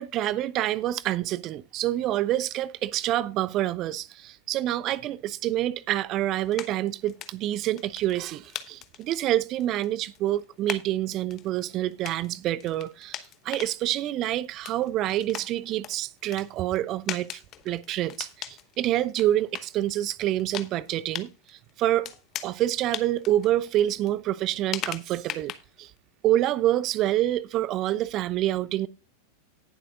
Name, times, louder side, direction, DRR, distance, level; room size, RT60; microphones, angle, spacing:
voice 1, 0.0-22.1 22.4-25.5 25.8-25.9 26.2-28.9, right 13 dB, 35° right, 0.4 m, -27 dB
sound 1, 6.4-26.0, left 12 dB, 35° left, 1.0 m, -40 dB
18.0 x 7.5 x 2.4 m
figure-of-eight pair, 90°, 0 cm